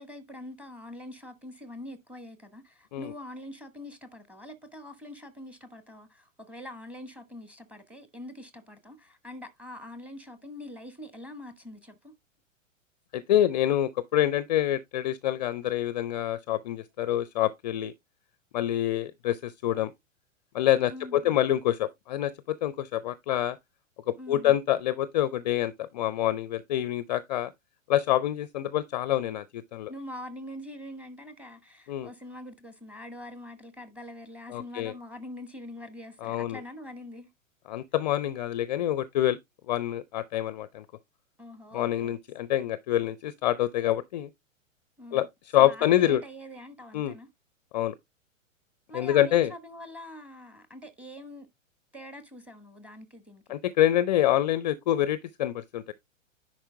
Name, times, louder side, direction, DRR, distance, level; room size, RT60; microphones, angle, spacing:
voice 1, 0.0-12.1 20.9-21.4 24.2-24.6 29.9-37.3 41.4-42.2 45.0-45.2 45.6-47.3 48.9-51.5 51.9-53.6, left 1 dB, 5° right, 1.1 m, -44 dB
voice 2, 13.1-17.9 18.5-19.9 20.5-22.3 22.6-23.6 24.3-27.5 27.9-29.9 31.9-32.1 34.5-34.9 36.2-36.6 37.7-39.4 39.7-40.8 41.7-44.3 45.1-45.3 45.5-46.2 46.9-47.1 47.7-47.9 48.9-49.5 53.5-55.9, left 12 dB, 35° left, 0.5 m, -26 dB
10.0 x 4.5 x 3.3 m
figure-of-eight pair, 105°, 39 cm